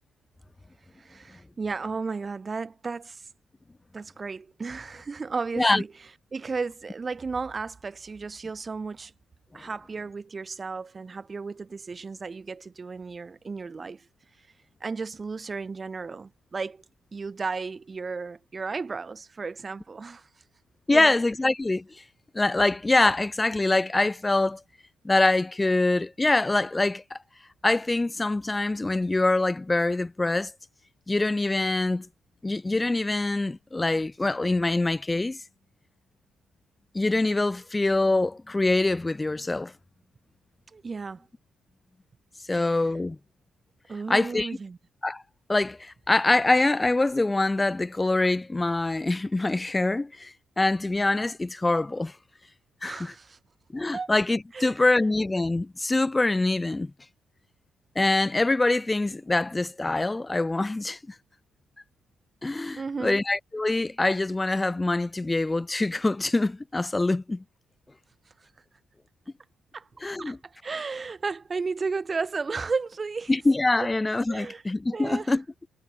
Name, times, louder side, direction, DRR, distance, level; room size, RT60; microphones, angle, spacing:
voice 1, 1.0-3.3 3.9-5.9 6.3-9.1 9.5-14.0 14.8-16.8 17.1-20.3 20.9-21.2 40.7-41.2 42.5-42.8 43.9-44.8 52.8-53.4 53.9-54.1 54.5-54.9 62.8-63.2 69.7-69.9 70.2-73.3 74.3-74.6 74.9-75.3, right 4 dB, 30° right, 2.9 m, -34 dB
voice 2, 20.9-21.9 22.3-24.6 25.0-27.2 27.6-30.5 31.1-32.1 32.4-35.4 36.9-39.7 42.5-43.2 44.1-44.5 45.0-45.2 45.5-52.1 52.8-53.1 53.7-56.9 58.0-61.1 62.4-67.4 70.0-70.4 73.3-75.4, left 2 dB, 15° left, 2.3 m, -24 dB
cardioid pair, 90°, 0 cm